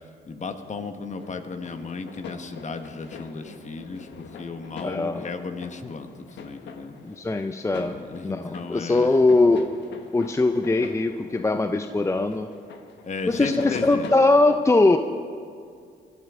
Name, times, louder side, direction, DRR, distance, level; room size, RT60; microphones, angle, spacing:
voice 1, 0.3-4.1 4.4-6.1 6.4-7.0 7.8-9.2 13.0-14.1, left 4 dB, 40° left, 7 dB, 1.3 m, -34 dB
sound 1, 1.2-14.4, left 5 dB, 75° left, 1.3 m, -42 dB
voice 2, 4.8-5.3 7.0-9.7 10.1-12.5 13.3-15.0, left 2 dB, 15° left, 8 dB, 0.6 m, -21 dB
22.0 x 11.5 x 3.7 m, 2.3 s
cardioid pair, 70°, 18 cm